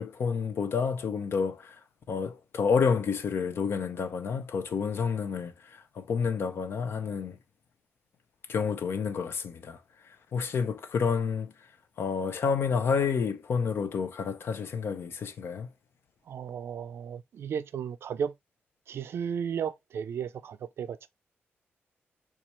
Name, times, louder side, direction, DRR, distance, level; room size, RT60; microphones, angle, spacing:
voice 1, 0.0-1.8 2.1-7.4 8.5-9.8 10.0-11.5 12.0-15.7, left 6 dB, 65° left, 0.5 m, -29 dB
voice 2, 16.3-18.3 18.9-21.1, right 7 dB, 70° right, 0.4 m, -34 dB
4.1 x 2.4 x 2.9 m
cardioid pair, 100°, 4 cm